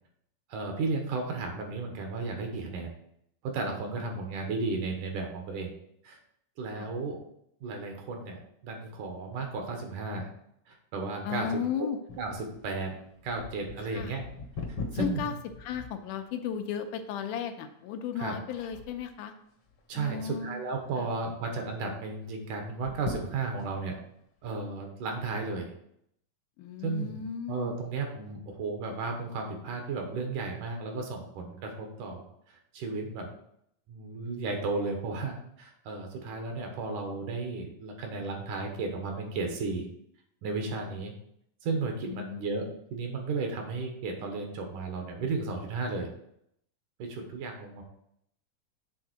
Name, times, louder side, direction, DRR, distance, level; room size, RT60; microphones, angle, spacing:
voice 1, 0.5-2.9 3.4-5.7 6.0-6.2 6.6-7.2 7.6-10.3 10.7-11.6 12.2-13.0 13.2-14.3 14.9-15.3 18.2-18.3 19.9-24.0 24.4-25.7 26.8-27.2 27.5-32.2 32.7-33.3 33.9-39.9 40.4-41.1 41.6-46.1 47.0-47.8, right 3 dB, 80° right, 3 dB, 2.7 m, -34 dB
voice 2, 11.2-12.0 13.9-14.2 14.9-15.3 15.6-19.3 19.9-20.6 21.0-21.1 26.6-27.8 42.1-42.7, left 8 dB, 90° left, 6 dB, 2.2 m, -35 dB
sound 1, 12.1-16.6 17.1-17.2 17.9-18.2 18.5-19.2 19.7-20.4 20.7-20.8 21.1-21.2 22.7-23.8 24.4-24.5, left 4 dB, 60° left, 1.5 m, -40 dB
7.6 x 3.6 x 6.0 m, 0.74 s
omnidirectional pair, 3.6 m